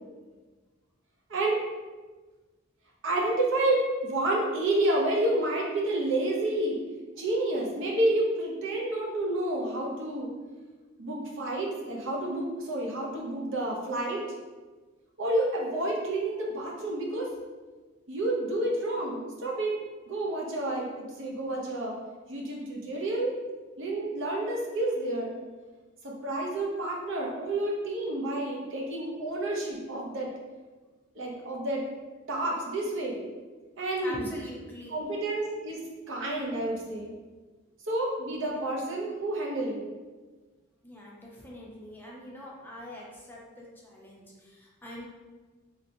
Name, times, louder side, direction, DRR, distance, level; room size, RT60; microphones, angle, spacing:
voice 1, 1.3-1.6 3.0-6.8 7.2-10.3 11.0-14.2 15.2-17.3 18.1-19.7 20.1-22.0 22.3-23.3 23.8-25.3 26.0-30.3 31.1-31.8 32.3-33.2 33.8-34.3 34.9-37.1 37.9-39.8, right 1 dB, 65° right, -2 dB, 0.7 m, -29 dB
voice 2, 34.0-35.0 40.8-45.1, left 1 dB, 10° left, -4 dB, 0.5 m, -44 dB
3.2 x 2.8 x 2.6 m, 1.3 s
head